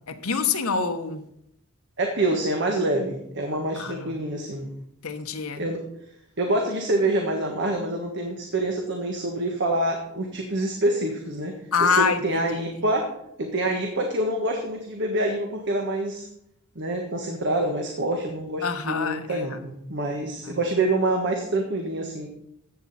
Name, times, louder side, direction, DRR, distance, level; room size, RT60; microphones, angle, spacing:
voice 1, 0.1-1.3 3.8-4.1 5.0-5.6 11.7-12.4 18.6-19.6 20.4-20.6, left 5 dB, 85° left, 1.1 m, -26 dB
voice 2, 2.0-4.7 5.6-5.8 6.4-16.3 16.7-22.3, right 1 dB, 55° right, 1.5 m, -26 dB
14.5 x 8.5 x 4.2 m
head